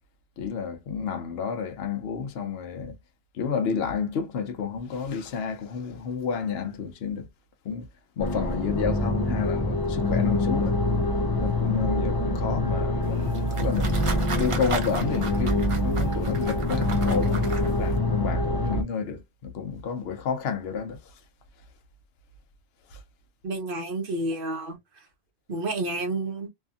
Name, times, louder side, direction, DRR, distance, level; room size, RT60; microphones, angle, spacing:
voice 1, 0.4-3.0 3.3-7.3 7.6-7.9 8.2-10.8 11.4-13.3 13.6-14.0 14.3-21.0 22.9-23.0, left 6 dB, 70° left, 0.9 m, -30 dB
sound 1, 8.2-18.8, left 1 dB, 30° left, 0.4 m, -25 dB
sound 2, 13.0-18.0, right 4 dB, 40° right, 0.5 m, -36 dB
voice 2, 23.4-25.1 25.5-26.5, right 2 dB, 55° right, 1.0 m, -30 dB
2.7 x 2.5 x 2.3 m
omnidirectional pair, 1.1 m